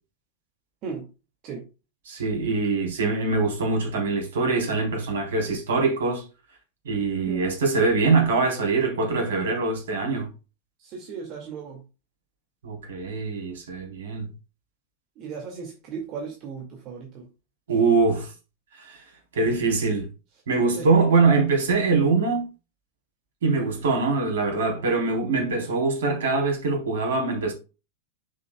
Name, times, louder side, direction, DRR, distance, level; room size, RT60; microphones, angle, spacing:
voice 1, 2.1-6.2 6.9-10.3 12.6-14.3 17.7-18.3 18.7-19.0 19.3-20.1 20.5-22.5 23.4-27.5, right 4 dB, 60° right, 3.6 m, -23 dB
voice 2, 10.8-11.9 15.2-17.3 20.8-20.9, right 5 dB, 40° right, 2.1 m, -36 dB
9.9 x 7.5 x 2.3 m
figure-of-eight pair, 90°, 0 cm